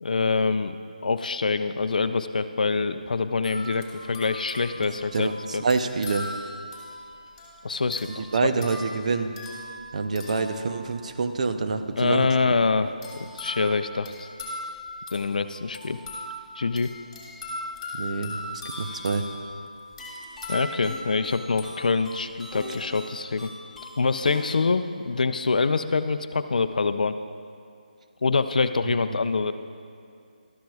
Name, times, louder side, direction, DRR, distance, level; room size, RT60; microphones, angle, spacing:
voice 1, 0.0-0.8 1.0-5.6 7.6-8.3 12.0-14.3 15.1-16.0 16.6-16.9 20.5-23.5 24.0-27.2 28.2-29.5, left 4 dB, 65° left, 11 dB, 0.5 m, -25 dB
sound 1, 3.4-11.3 13.0-22.2 22.7-22.9, left 1 dB, 20° left, 2.4 m, -39 dB
voice 2, 5.1-6.3 8.2-9.3 9.9-12.6 17.9-19.2 28.8-29.2, right 4 dB, 50° right, 8 dB, 0.6 m, -27 dB
sound 2, 20.0-25.9, left 1 dB, ahead, 0.9 m, -43 dB
13.0 x 11.5 x 2.3 m, 2.3 s
figure-of-eight pair, 155°, 5 cm